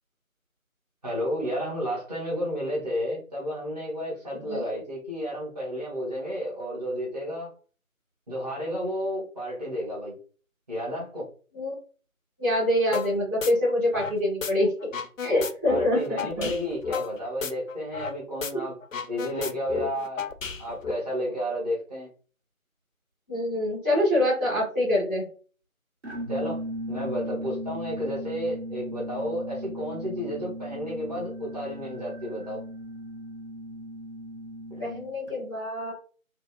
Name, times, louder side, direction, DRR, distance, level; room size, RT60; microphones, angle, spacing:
voice 1, 1.0-7.5 8.3-10.2 10.7-11.3 15.6-18.7 19.1-20.3 20.6-22.1 26.3-26.6 26.9-32.6 34.7-34.8, equal, 30° right, -7 dB, 1.5 m, -32 dB
voice 2, 4.3-4.8 11.5-11.7 12.4-14.9 15.2-16.5 18.5-18.6 23.3-25.2 34.8-35.9, left 1 dB, 5° right, -18 dB, 1.6 m, -25 dB
sound 1, 12.9-13.1 13.4-14.5 14.8-18.1 18.4-18.5 18.8-20.9, left 5 dB, 65° left, 0.5 m, -32 dB
sound 2, 26.0-35.3, equal, 50° right, 1.2 m, -37 dB
3.5 x 2.9 x 2.2 m, 0.39 s
figure-of-eight pair, 160°, 42 cm